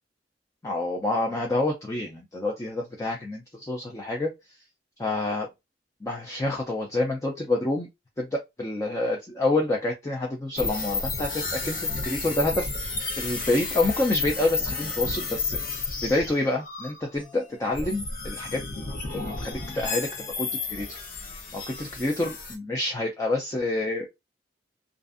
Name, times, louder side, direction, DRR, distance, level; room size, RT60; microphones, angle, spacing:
voice 1, 0.6-4.3 5.0-5.5 6.0-7.9 8.2-12.7 13.2-15.6 16.0-18.6 19.1-21.0 21.5-24.1, left 2 dB, 20° left, 0.4 m, -28 dB
sound 1, 10.6-22.6, left 4 dB, 50° left, 0.7 m, -32 dB
2.5 x 2.4 x 2.4 m
head